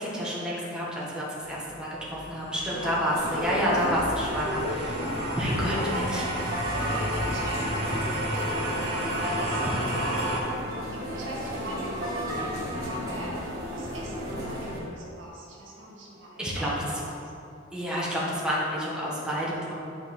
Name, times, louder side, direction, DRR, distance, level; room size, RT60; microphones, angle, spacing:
voice 1, 0.0-5.0 5.4-6.2 9.6-9.7 16.4-17.0 17.7-19.7, equal, 5° right, -7 dB, 1.3 m, -29 dB
sound 1, 1.6-10.4, right 1 dB, 30° right, 1.5 m, -32 dB
voice 2, 2.7-3.0 5.0-6.4 6.7-10.5 10.9-13.4 13.6-17.1, equal, 75° right, -4 dB, 1.7 m, -39 dB
sound 2, 3.1-14.8, equal, 55° right, 1.8 m, -33 dB
10.5 x 4.5 x 3.7 m, 2.7 s
head